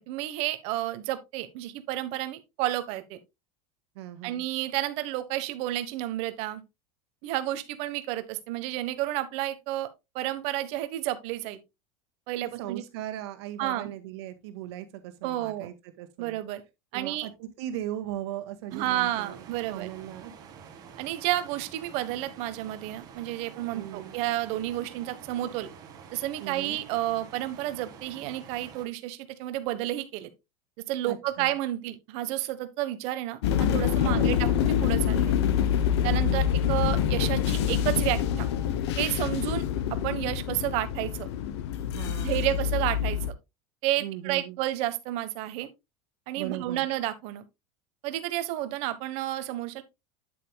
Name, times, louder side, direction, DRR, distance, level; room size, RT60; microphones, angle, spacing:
voice 1, 0.1-3.2 4.2-6.6 7.2-9.9 10.1-11.6 12.3-12.8 13.6-13.9 15.2-15.7 16.2-16.6 16.9-17.3 18.7-19.9 21.0-25.7 26.1-30.3 30.9-35.4 36.0-38.5 38.9-39.6 39.9-41.3 42.2-43.3 43.8-45.7 46.3-47.4 48.0-49.8, right 14 dB, 45° right, 1.2 m, -31 dB
voice 2, 4.0-4.4 12.4-16.4 16.9-20.3 23.7-24.2 26.4-26.8 31.0-31.5 34.0-34.7 36.0-36.4 41.9-42.6 44.0-44.6 46.3-46.9, right 12 dB, 75° right, 1.8 m, -38 dB
sound 1, 18.7-28.9, right 7 dB, 25° right, 1.8 m, -48 dB
sound 2, 33.4-43.3, left 9 dB, 80° left, 1.0 m, -26 dB
9.2 x 8.2 x 2.3 m
supercardioid pair, 160°, 14 cm